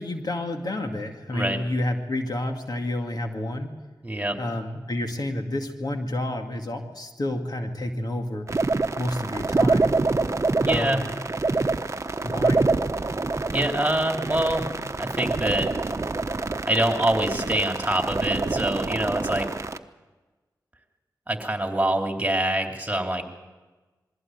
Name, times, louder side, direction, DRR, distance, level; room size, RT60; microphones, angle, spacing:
voice 1, 0.0-3.7 4.4-8.5 9.0-10.0 10.7-11.1 12.2-12.7, left 1 dB, 60° left, 4 dB, 2.2 m, -29 dB
voice 2, 4.0-4.4 10.6-11.0 13.5-15.9 16.6-19.5 21.3-23.2, right 1 dB, 20° right, 3 dB, 3.2 m, -25 dB
sound 1, 8.5-19.8, right 3 dB, 40° right, 1.0 m, -26 dB
22.5 x 15.5 x 8.1 m, 1.2 s
cardioid pair, 40°, 7 cm